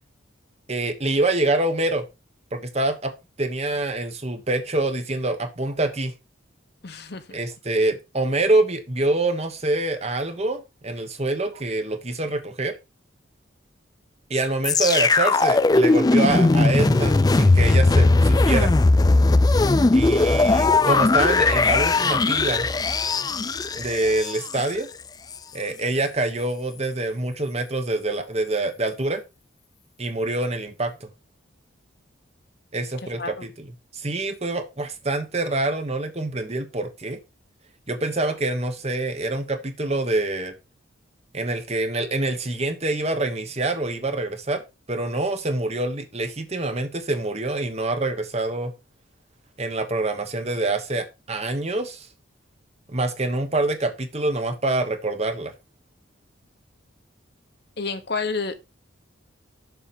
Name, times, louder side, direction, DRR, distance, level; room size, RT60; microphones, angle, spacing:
voice 1, 0.7-2.0 2.5-3.1 3.4-6.1 7.3-12.8 14.3-18.7 19.9-22.7 23.7-24.9 25.5-29.2 30.0-31.1 32.7-33.7 33.9-37.2 37.9-40.5 41.3-44.6 44.9-48.7 49.6-52.1 52.9-55.5, right 2 dB, 30° right, 1.3 m, -25 dB
voice 2, 6.8-7.4 33.2-33.3 57.8-58.8, left 4 dB, 55° left, 1.1 m, -30 dB
sound 1, 14.6-24.7 25.3-25.4, left 3 dB, 20° left, 0.3 m, -18 dB
7.1 x 4.8 x 5.9 m
head